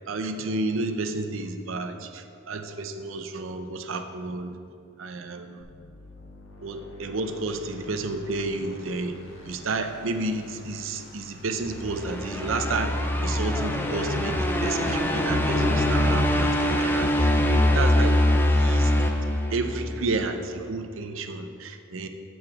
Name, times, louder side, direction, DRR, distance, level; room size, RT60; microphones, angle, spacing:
voice 1, 0.1-4.6 5.0-5.6 6.6-9.2 9.5-12.9 13.2-18.9 19.5-22.1, right 3 dB, 65° right, 7 dB, 0.6 m, -31 dB
sound 1, 5.6-18.3, left 2 dB, 70° left, 1.4 m, -47 dB
sound 2, 11.7-20.0, left 1 dB, 10° left, 0.5 m, -23 dB
7.9 x 4.7 x 6.3 m, 2.4 s
head